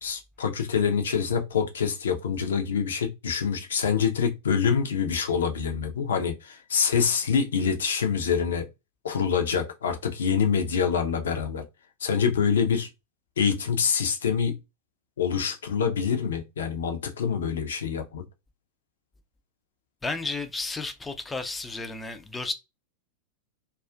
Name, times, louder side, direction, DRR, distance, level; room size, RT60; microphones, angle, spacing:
voice 1, 0.0-8.7 9.0-11.6 12.0-12.9 13.4-14.6 15.2-18.2, left 6 dB, 65° left, 0.5 m, -26 dB
voice 2, 20.0-22.5, left 3 dB, 10° left, 0.4 m, -32 dB
2.4 x 2.3 x 2.3 m
figure-of-eight pair, 90°, 0 cm